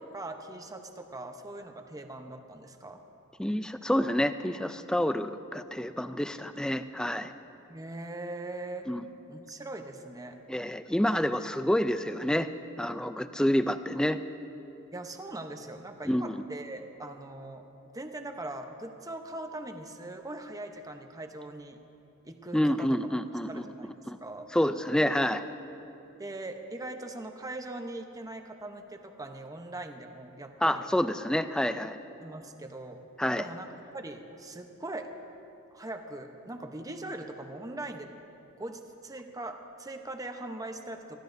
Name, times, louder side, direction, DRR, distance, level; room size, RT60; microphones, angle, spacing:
voice 1, 0.1-3.0 7.7-8.9 9.3-10.4 14.9-17.6 17.9-21.8 22.2-22.9 23.5-23.9 24.2-24.5 26.2-30.9 32.2-33.0 33.4-35.1 35.7-38.1 38.6-41.2, right 2 dB, 15° right, 5 dB, 0.8 m, -41 dB
voice 2, 3.4-7.3 8.9-9.0 10.5-12.5 12.8-14.2 16.1-16.4 22.5-23.6 24.1-24.2 24.5-25.4 30.6-32.0 33.2-33.5, left 1 dB, 5° left, 11 dB, 0.3 m, -28 dB
24.0 x 15.0 x 2.6 m, 3.0 s
head